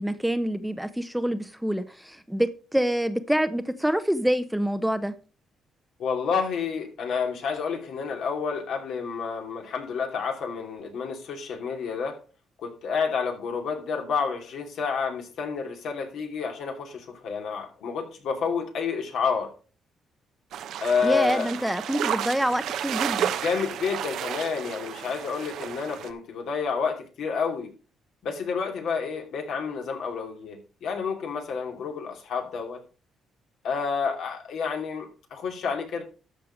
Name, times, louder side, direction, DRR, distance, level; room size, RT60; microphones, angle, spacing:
voice 1, 0.0-5.1 21.0-23.3, equal, 5° right, 0.8 m, -26 dB
voice 2, 6.0-12.2 12.6-19.5 20.8-21.5 23.3-27.7 28.2-32.8 33.6-36.0, left 5 dB, 75° left, 2.8 m, -29 dB
sound 1, 20.5-26.1, right 9 dB, 80° right, 0.9 m, -32 dB
13.0 x 4.7 x 5.1 m
cardioid pair, 90°, 0 cm